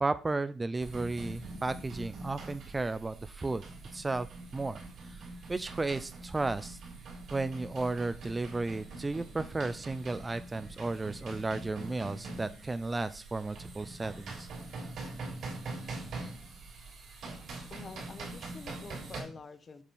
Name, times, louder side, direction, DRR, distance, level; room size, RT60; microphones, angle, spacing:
voice 1, 0.0-3.6 3.9-4.3 4.5-4.8 5.1-6.8 7.3-14.5, right 3 dB, 20° right, 13 dB, 0.4 m, -34 dB
sound 1, 0.8-19.2, right 3 dB, 65° right, 2.9 m, -43 dB
voice 2, 17.7-19.8, left 4 dB, 40° left, 11 dB, 0.8 m, -47 dB
7.2 x 3.7 x 4.1 m, 0.37 s
cardioid pair, 90°, 0 cm